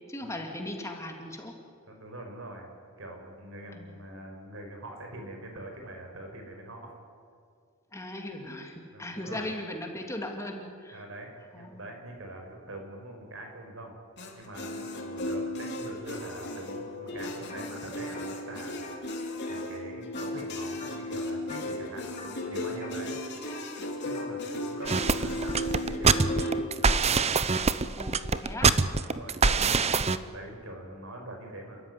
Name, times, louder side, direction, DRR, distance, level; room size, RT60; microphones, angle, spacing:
voice 1, 0.1-1.5 3.7-3.9 7.9-11.0 11.5-11.9 28.0-28.7 29.6-30.2, left 1 dB, 15° left, 2 dB, 2.3 m, -38 dB
voice 2, 1.9-2.7 3.0-7.0 8.9-9.5 10.9-13.9 14.3-18.8 19.5-23.2 24.0-26.4 29.0-29.9 30.3-31.8, right 1 dB, 65° right, 2 dB, 5.3 m, -43 dB
sound 1, 14.2-26.7, left 1 dB, 50° left, 3.2 m, -35 dB
sound 2, 17.5-17.7 18.0-20.5 20.8-21.2 21.5-21.8 22.2-23.0 23.5-23.8 24.1-27.7, left 3 dB, 35° left, 3.9 m, -45 dB
sound 3, 24.9-30.2, right 4 dB, 30° right, 0.7 m, -24 dB
29.5 x 13.5 x 9.7 m, 2.2 s
head